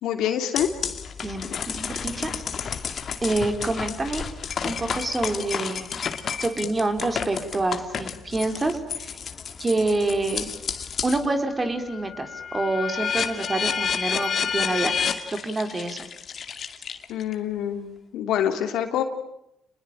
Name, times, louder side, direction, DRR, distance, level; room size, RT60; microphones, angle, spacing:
voice 1, 0.0-0.7 17.1-19.0, left 10 dB, 80° left, 6 dB, 3.0 m, -26 dB
sound 1, 0.6-11.3 11.7-17.3, left 7 dB, 55° left, 2.4 m, -30 dB
voice 2, 1.2-2.3 3.2-4.2 4.6-6.0 6.4-9.2 9.6-10.5 11.0-14.9 15.3-16.1, right 2 dB, 25° right, 7 dB, 4.1 m, -27 dB
29.5 x 21.0 x 8.9 m, 0.81 s
supercardioid pair, 70°, 0 cm